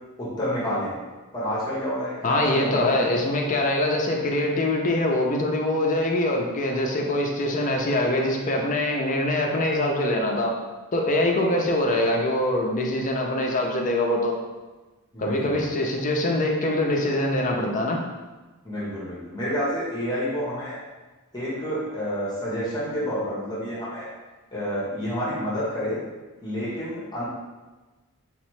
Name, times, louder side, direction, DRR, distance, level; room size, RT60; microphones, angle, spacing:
voice 1, 0.2-0.9 1.3-3.0 15.1-15.7 18.6-20.8 21.3-24.1 24.5-26.0 26.4-27.2, equal, 20° left, -8 dB, 1.1 m, -29 dB
voice 2, 2.2-10.5 10.9-14.4 15.2-18.0, left 1 dB, 35° left, 1 dB, 0.5 m, -23 dB
3.5 x 3.0 x 3.1 m, 1.2 s
head